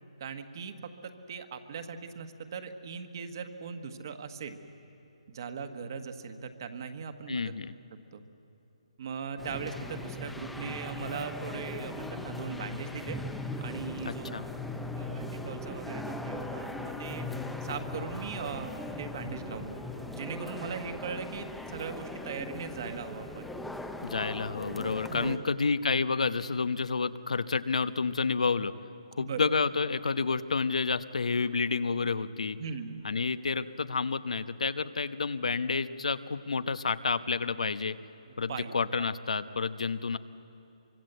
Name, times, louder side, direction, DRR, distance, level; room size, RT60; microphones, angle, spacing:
voice 1, 0.2-4.6 5.3-7.4 8.1-8.2 9.0-13.2 13.6-14.5 15.0-17.2 17.6-23.5 25.1-25.4 29.2-29.4 32.6-33.1 38.5-38.7, right 6 dB, 35° right, 7 dB, 1.5 m, -39 dB
voice 2, 7.3-7.7 14.0-14.4 24.0-28.7 29.2-32.6 33.0-38.0 38.4-40.2, left 4 dB, 85° left, 12 dB, 1.0 m, -30 dB
sound 1, 9.4-25.4, left 2 dB, ahead, 0.7 m, -39 dB
24.5 x 24.0 x 8.1 m, 2.7 s
hypercardioid pair, 170°, 4 cm